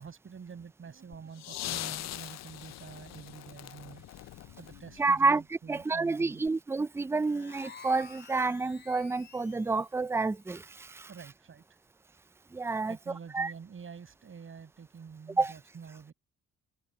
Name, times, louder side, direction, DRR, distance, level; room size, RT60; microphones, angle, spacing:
voice 1, 0.0-4.0 4.5-6.4 11.1-11.8 12.9-16.1, right 6 dB, 45° right, 7.4 m, -47 dB
sound 1, 1.1-5.3 6.5-6.6, left 14 dB, 60° left, 0.5 m, -41 dB
voice 2, 5.0-5.4 5.7-11.1 12.5-13.0 13.3-13.5 15.4-15.5, right 3 dB, 10° right, 0.5 m, -29 dB
sound 2, 7.2-9.9, left 5 dB, 35° left, 2.9 m, -51 dB
cardioid pair, 90°, 30 cm